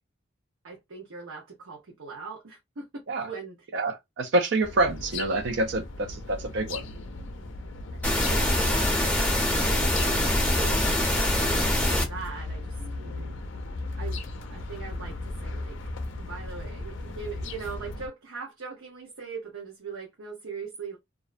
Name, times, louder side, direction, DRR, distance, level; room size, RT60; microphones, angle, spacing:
voice 1, 0.6-3.6 7.9-12.7 14.0-14.2 14.5-15.8 16.2-21.0, right 5 dB, 85° right, 0.7 m, -40 dB
voice 2, 3.7-6.9 13.0-13.3, right 2 dB, 60° right, 0.4 m, -27 dB
sound 1, 4.6-18.1, left 2 dB, 65° left, 0.5 m, -37 dB
sound 2, 8.0-12.0, left 1 dB, 5° left, 0.6 m, -24 dB
2.5 x 2.0 x 2.4 m
head